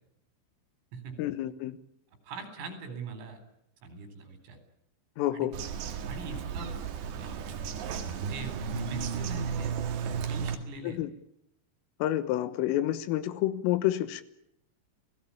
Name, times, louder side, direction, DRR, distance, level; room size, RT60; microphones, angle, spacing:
voice 1, 1.2-1.8 5.2-5.6 10.8-11.1 12.0-14.2, left 13 dB, 90° left, 14 dB, 3.8 m, -29 dB
voice 2, 2.2-3.4 3.8-4.6 5.4-5.5 6.0-6.8 7.1-7.8 8.0-9.7 10.1-11.0, right 3 dB, 90° right, 8 dB, 6.7 m, -42 dB
Bird vocalization bird call bird song, 5.5-10.6, right 7 dB, 65° right, 3.8 m, -34 dB
29.0 x 18.0 x 8.6 m, 0.76 s
omnidirectional pair, 5.7 m